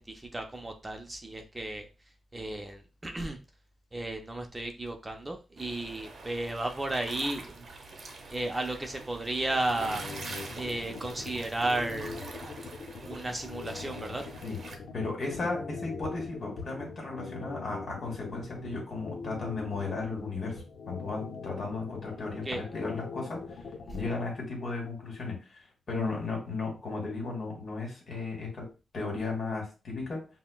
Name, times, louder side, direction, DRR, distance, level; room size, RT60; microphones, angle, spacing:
voice 1, 0.0-1.9 2.3-3.4 3.9-7.7 8.3-10.0 10.5-12.4 13.0-14.2 22.5-22.6, right 2 dB, 20° right, 4 dB, 0.5 m, -34 dB
sound 1, 5.6-14.8, right 3 dB, 55° right, 0.7 m, -45 dB
sound 2, 9.5-24.2, left 4 dB, 80° left, 0.7 m, -42 dB
voice 2, 14.9-23.4 23.9-28.7 28.9-30.3, left 3 dB, 55° left, 0 dB, 1.6 m, -35 dB
5.6 x 2.1 x 2.3 m, 0.30 s
cardioid pair, 100°, 0 cm